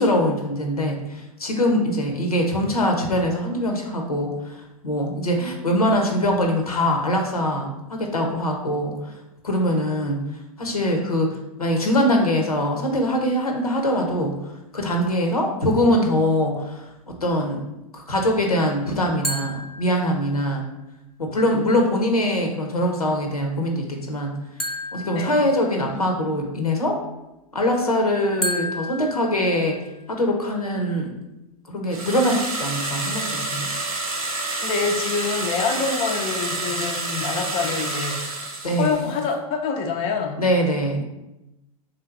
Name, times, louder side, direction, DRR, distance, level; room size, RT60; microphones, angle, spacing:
voice 1, 0.0-9.2 9.4-10.2 10.6-17.6 17.9-20.6 21.2-24.4 24.9-27.0 27.5-29.8 30.1-31.1 31.7-33.7 38.6-39.1 40.4-41.0, equal, 85° left, 2 dB, 0.8 m, -23 dB
sound 1, 19.2-20.5 24.6-26.1 28.4-30.1, left 1 dB, ahead, 0.8 m, -32 dB
sound 2, 31.9-39.2, right 2 dB, 80° right, 0.9 m, -28 dB
voice 2, 34.6-38.2 38.8-40.4, left 5 dB, 30° left, 3 dB, 0.5 m, -26 dB
3.4 x 2.8 x 4.3 m, 0.94 s
figure-of-eight pair, 95°, 18 cm